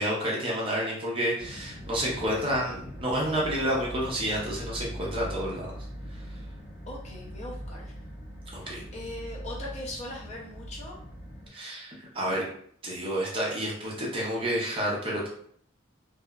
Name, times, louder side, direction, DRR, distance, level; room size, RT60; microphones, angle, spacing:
voice 1, 0.0-5.6 8.5-8.8 11.5-12.4 12.8-15.3, equal, 25° right, -4 dB, 0.6 m, -29 dB
sound 1, 1.4-11.5, equal, 80° left, 1.4 m, -41 dB
voice 2, 6.9-7.9 8.6-11.0, left 1 dB, 30° left, -3 dB, 0.5 m, -40 dB
2.8 x 2.2 x 2.3 m, 0.63 s
head